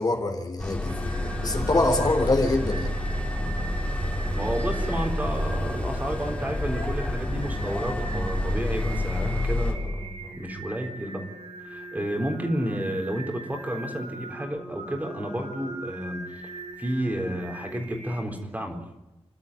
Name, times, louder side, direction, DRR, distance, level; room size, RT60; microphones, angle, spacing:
voice 1, 0.0-2.9, left 2 dB, 40° left, 5 dB, 3.5 m, -25 dB
sound 1, 0.6-9.7, left 1 dB, 15° left, 3.9 m, -28 dB
Singing, 0.9-18.2, right 2 dB, 80° right, 5.0 m, -41 dB
voice 2, 4.4-11.2 11.6-16.4 16.8-18.8, right 1 dB, 15° right, 2 dB, 3.9 m, -31 dB
30.0 x 12.5 x 9.7 m, 1.0 s
wide cardioid pair, 140°, 10 cm